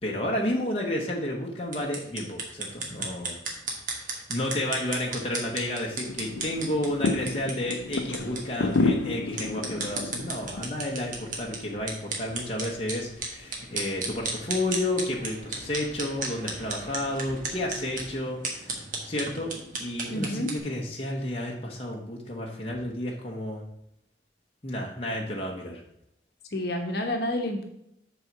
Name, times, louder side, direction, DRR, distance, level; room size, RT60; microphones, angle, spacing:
voice 1, 0.0-3.4 3.9-19.5 19.8-23.6 24.6-25.8, left 1 dB, 30° left, -1 dB, 1.0 m, -31 dB
sound 1, 1.6-20.6, right 3 dB, 45° right, 1.4 m, -36 dB
sound 2, 6.1-18.1, left 3 dB, 85° left, 0.5 m, -33 dB
voice 2, 20.1-20.5 26.5-27.6, left 1 dB, 55° left, 3 dB, 1.1 m, -29 dB
7.7 x 4.0 x 5.9 m, 0.78 s
head